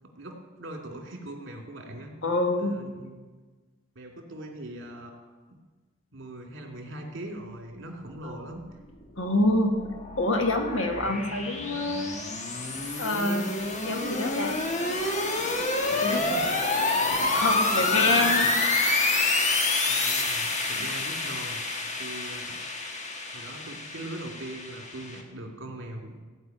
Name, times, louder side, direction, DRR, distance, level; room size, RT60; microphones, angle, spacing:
voice 1, 0.0-2.1 2.6-3.2 3.9-5.6 6.1-8.6 15.8-16.6 17.1-17.3 17.8-18.5 19.9-21.6 22.0-22.6 23.3-26.1, right 1 dB, 65° right, 1 dB, 2.4 m, -41 dB
voice 2, 2.2-2.7 8.2-8.4 9.2-9.9 10.2-12.2 13.0-13.5 13.8-14.5 16.0-16.4 17.3-18.5, left 2 dB, 80° left, 4 dB, 1.6 m, -26 dB
sound 1, 9.2-25.2, left 3 dB, 35° left, 1.4 m, -28 dB
16.0 x 5.3 x 9.0 m, 1.4 s
head